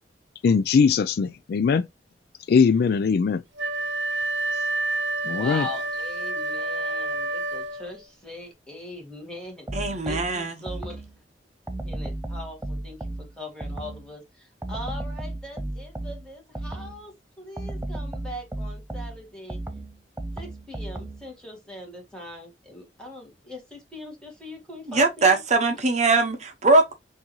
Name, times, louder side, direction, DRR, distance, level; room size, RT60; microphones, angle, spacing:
voice 1, 0.4-1.9 2.5-3.4 5.2-5.7, left 5 dB, 60° left, 0.3 m, -20 dB
Wind instrument woodwind instrument, 3.6-8.0, right 2 dB, 75° right, 0.8 m, -28 dB
voice 2, 5.3-11.0 11.8-19.6 20.3-25.4, left 1 dB, 5° left, 1.8 m, -41 dB
sound 1, 9.7-11.2 11.7-14.1 14.6-17.1 17.6-21.3, right 1 dB, 10° right, 0.5 m, -34 dB
voice 3, 9.7-10.6 24.9-26.9, right 3 dB, 40° right, 0.8 m, -21 dB
6.0 x 2.7 x 3.0 m
head